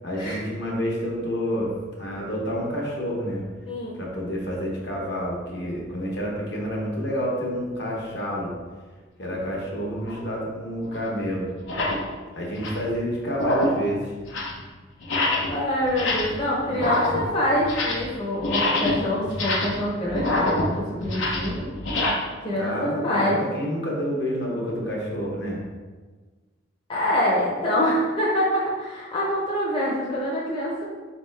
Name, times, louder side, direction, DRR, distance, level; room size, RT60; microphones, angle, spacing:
voice 1, 0.0-1.7 2.0-3.4 3.9-8.5 9.2-11.5 12.3-14.1 22.5-25.6, equal, 60° left, -3 dB, 1.1 m, -29 dB
voice 2, 3.7-4.0 15.5-21.7 22.4-23.4 26.9-30.8, left 1 dB, 25° left, -6 dB, 0.7 m, -25 dB
sound 1, 10.0-10.2 10.9-11.0 11.6-12.0 12.4-12.9 13.3-13.8 14.2-14.6 15.0-15.6 15.8-16.4 16.7-18.1 18.4-22.1, left 2 dB, 80° left, 0.8 m, -26 dB
4.1 x 3.4 x 3.2 m, 1.4 s
head